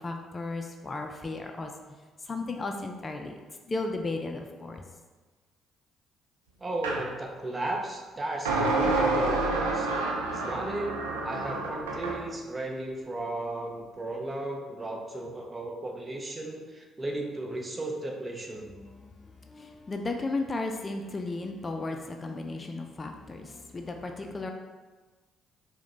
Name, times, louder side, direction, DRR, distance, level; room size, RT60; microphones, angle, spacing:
voice 1, 0.0-4.8 18.6-24.5, left 3 dB, 35° left, 4 dB, 0.4 m, -35 dB
voice 2, 6.6-18.7, right 2 dB, 30° right, 1 dB, 0.8 m, -35 dB
sound 1, 6.8-7.0 8.5-12.2, right 2 dB, 90° right, 0.5 m, -28 dB
4.9 x 2.2 x 3.8 m, 1.3 s
hypercardioid pair, 50°, 0 cm